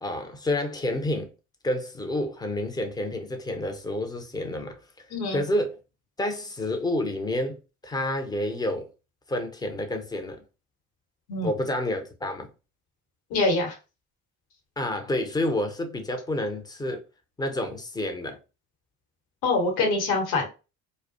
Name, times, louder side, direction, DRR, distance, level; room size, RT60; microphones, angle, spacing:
voice 1, 0.0-1.3 1.6-5.1 5.3-5.7 6.2-7.6 7.8-8.9 9.3-10.4 11.4-12.5 14.8-17.0 17.4-18.4, left 1 dB, 10° left, 0.5 m, -29 dB
voice 2, 5.1-5.4 11.3-11.5 13.3-13.7 19.4-20.5, left 3 dB, 60° left, 1.1 m, -24 dB
2.3 x 2.1 x 2.6 m
hypercardioid pair, 55°, 42 cm